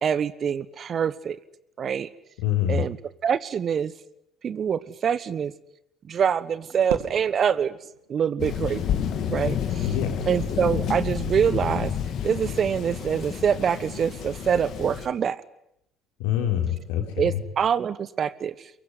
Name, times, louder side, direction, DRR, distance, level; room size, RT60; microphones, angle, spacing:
voice 1, 0.0-1.4 1.8-2.1 2.7-3.0 3.2-3.9 4.4-5.5 6.1-7.8 8.1-8.8 9.3-9.9 10.3-11.9 12.2-15.4 17.2-18.7, right 7 dB, 45° right, 17 dB, 1.2 m, -25 dB
voice 2, 2.4-2.8 9.8-10.3 16.2-17.4, left 10 dB, 70° left, 4 dB, 4.6 m, -25 dB
Fireworks, 6.9-9.1, right 10 dB, 75° right, 2.7 m, -38 dB
Thunder, 8.4-15.1, left 8 dB, 55° left, 2.4 m, -30 dB
24.0 x 22.5 x 9.8 m, 0.80 s
figure-of-eight pair, 55°, 0 cm